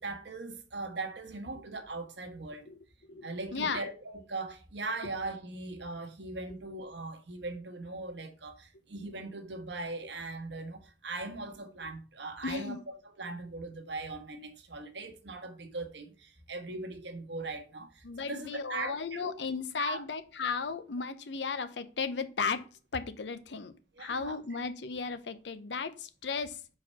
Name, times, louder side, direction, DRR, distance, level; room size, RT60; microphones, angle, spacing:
voice 1, 0.0-2.7 3.2-19.3 19.8-20.0 23.9-24.4, right 2 dB, 85° right, 1.3 m, -40 dB
voice 2, 3.1-3.8 12.4-12.8 18.0-22.7 22.9-23.7 24.0-26.6, left 5 dB, 85° left, 0.7 m, -35 dB
4.8 x 4.3 x 5.6 m
head